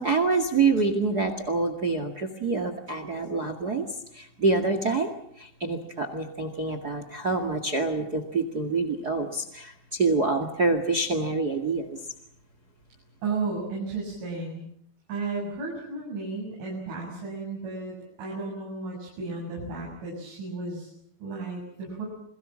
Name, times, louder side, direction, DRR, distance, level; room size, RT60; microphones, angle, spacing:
voice 1, 0.0-3.9 4.1-5.1 5.4-12.0, right 3 dB, 45° right, 10 dB, 1.2 m, -26 dB
voice 2, 13.2-14.6 15.1-20.9 21.2-22.1, right 3 dB, 90° right, -2 dB, 9.5 m, -33 dB
28.5 x 22.5 x 7.5 m, 0.71 s
omnidirectional pair, 5.4 m